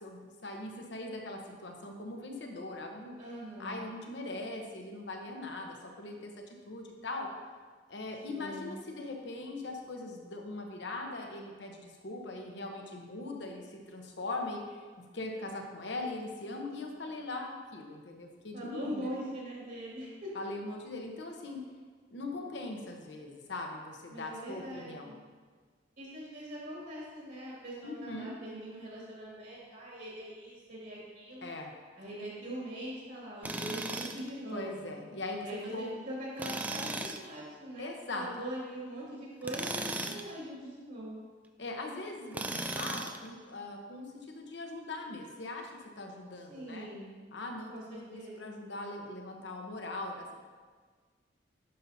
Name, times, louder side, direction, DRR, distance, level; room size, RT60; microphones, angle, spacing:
voice 1, 0.0-3.2 3.6-6.3 6.7-7.3 7.9-14.9 15.1-19.1 20.3-21.6 22.1-25.2 27.8-28.3 31.4-31.7 34.5-36.0 37.8-38.3 39.9-40.2 41.6-46.9 47.3-50.4, left 2 dB, 65° left, 2 dB, 1.0 m, -41 dB
voice 2, 3.2-3.8 8.3-8.7 18.5-20.3 24.1-25.2 26.0-31.5 32.0-34.8 35.4-41.2 46.5-47.1 47.7-48.5, right 1 dB, 60° right, -6 dB, 2.1 m, -42 dB
Tools, 33.4-34.3 36.4-37.2 39.4-40.3 42.3-43.3, right 2 dB, 10° right, 0.3 m, -36 dB
10.5 x 5.5 x 2.8 m, 1.5 s
head